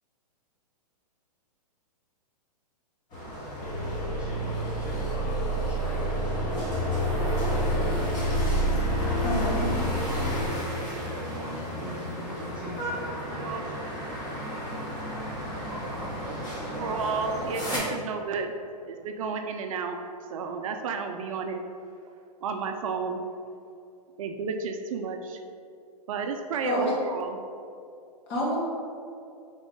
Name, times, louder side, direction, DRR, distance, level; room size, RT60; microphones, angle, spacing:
sound 1, 3.1-17.8, equal, 20° left, 1.1 m, -34 dB
sound 2, 3.6-10.5, right 1 dB, 70° left, 0.8 m, -28 dB
voice 1, 4.2-8.1 8.9-9.4 10.1-14.9 15.7-17.0, equal, 5° right, -8 dB, 0.6 m, -42 dB
voice 2, 9.2-9.7 26.6-26.9 28.3-28.6, equal, 40° left, -5 dB, 1.2 m, -27 dB
voice 3, 16.8-18.5 18.9-20.0 20.3-21.6 22.4-23.2 24.2-25.4 26.1-27.4, right 5 dB, 55° right, 5 dB, 0.4 m, -32 dB
3.6 x 3.5 x 3.8 m, 2.5 s
hypercardioid pair, 145°, 21 cm